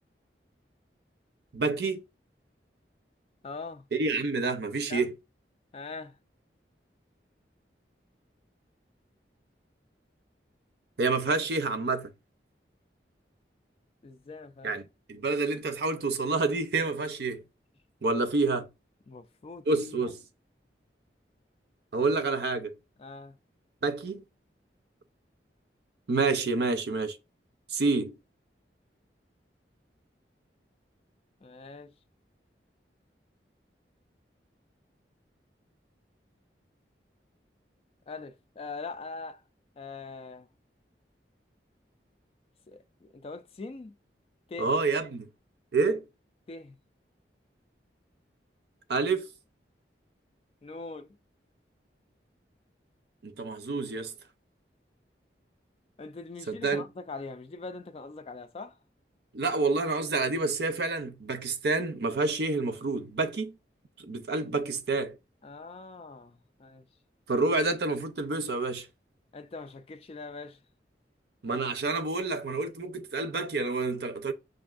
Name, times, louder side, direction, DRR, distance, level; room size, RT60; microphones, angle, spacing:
voice 1, 1.5-2.0 3.9-5.1 11.0-12.1 14.6-17.4 18.0-18.7 19.7-20.2 21.9-22.8 23.8-24.2 26.1-27.2 27.7-28.2 44.6-45.3 45.7-46.1 48.9-49.3 53.2-54.1 56.5-56.8 59.3-63.6 64.0-65.2 67.3-68.9 71.4-74.3, right 3 dB, 65° right, 0.6 m, -28 dB
voice 2, 3.4-3.8 4.9-5.1 5.7-6.2 14.0-14.7 19.1-19.7 23.0-23.4 31.4-31.9 38.1-39.4 39.8-40.5 42.7-44.0 44.5-44.7 46.5-46.8 50.6-51.1 56.0-58.8 65.4-66.8 69.3-70.6, left 3 dB, 35° left, 0.3 m, -42 dB
6.2 x 2.5 x 2.4 m
head